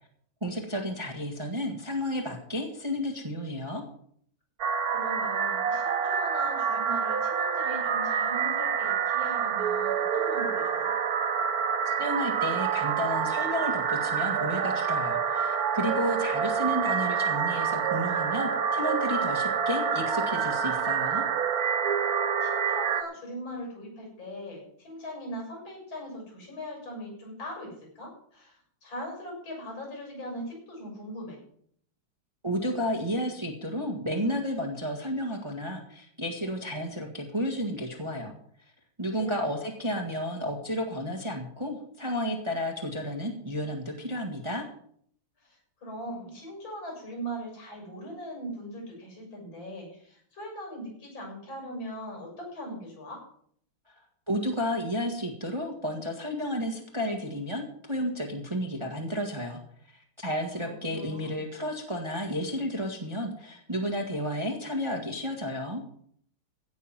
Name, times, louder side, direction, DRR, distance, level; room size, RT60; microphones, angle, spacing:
voice 1, 0.4-3.8 11.8-21.2 32.4-38.3 39.0-44.7 54.3-59.6 60.2-65.8, equal, 15° right, 2 dB, 1.6 m, -32 dB
sound 1, 4.6-23.0, right 7 dB, 55° right, 1.2 m, -27 dB
voice 2, 4.9-10.9 15.9-16.0 16.3-16.5 22.4-31.4 39.1-39.4 45.4-53.2 60.6-61.4, equal, 70° left, -1 dB, 8.1 m, -40 dB
16.5 x 6.2 x 7.4 m, 0.63 s
omnidirectional pair, 2.3 m